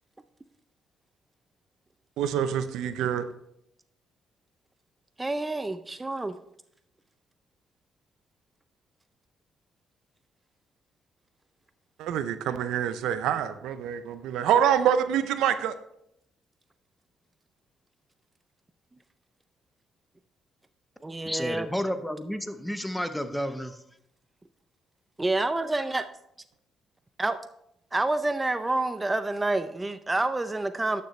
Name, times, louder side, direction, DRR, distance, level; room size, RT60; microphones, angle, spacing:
voice 1, 2.2-3.3 12.0-15.8, right 9 dB, 80° right, 11 dB, 0.5 m, -26 dB
voice 2, 5.2-6.4 21.0-21.7 25.2-26.1 27.2-27.4 27.9-31.0, right 2 dB, 20° right, 10 dB, 0.5 m, -28 dB
voice 3, 21.2-23.8, equal, 5° left, 10 dB, 0.8 m, -31 dB
11.5 x 6.7 x 3.2 m, 0.78 s
supercardioid pair, 70°, 0 cm